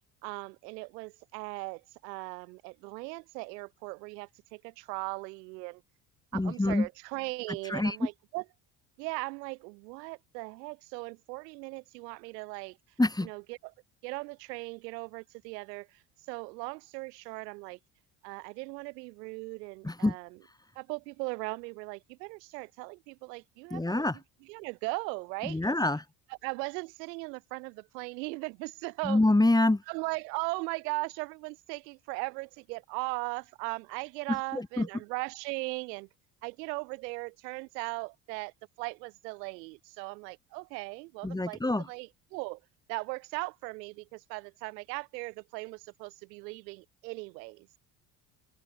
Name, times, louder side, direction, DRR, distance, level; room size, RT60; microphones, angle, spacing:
voice 1, 0.2-5.8 6.3-8.4 9.0-12.8 13.2-13.7 14.0-17.8 18.2-20.4 20.7-24.1 24.4-25.8 26.3-29.2 29.9-36.1 36.4-42.6 42.9-47.7, right 28 dB, 80° right, 0.9 m, -38 dB
voice 2, 6.3-6.9 7.7-8.0 13.0-13.3 19.8-20.1 23.7-24.2 25.4-26.0 29.0-29.8 34.5-34.9 41.2-41.8, left 2 dB, 10° left, 1.3 m, -26 dB
hypercardioid pair, 70°, 49 cm